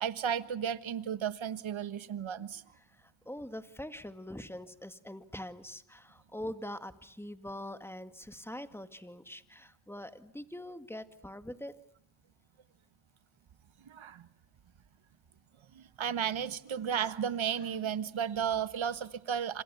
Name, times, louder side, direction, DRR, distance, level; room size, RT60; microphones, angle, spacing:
voice 1, 0.0-2.6 13.9-14.2 15.7-19.6, right 8 dB, 70° right, 1.4 m, -34 dB
voice 2, 2.9-11.8, left 1 dB, 5° left, 2.0 m, -43 dB
28.0 x 26.5 x 6.9 m
cardioid pair, 70°, 49 cm